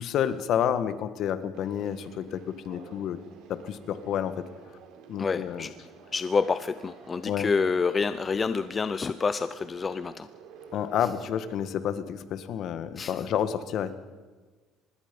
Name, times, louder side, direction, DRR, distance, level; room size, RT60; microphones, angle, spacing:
voice 1, 0.0-3.2 3.5-4.5 5.1-5.7 7.2-7.5 10.7-13.9, left 9 dB, 55° left, 11 dB, 1.6 m, -29 dB
Conversation, 1.5-11.5, right 6 dB, 70° right, 4.6 m, -50 dB
voice 2, 5.2-5.7 6.1-10.3 13.0-13.2, left 5 dB, 25° left, 13 dB, 0.6 m, -28 dB
24.5 x 21.0 x 5.4 m, 1.4 s
cardioid pair, 120°, 0 cm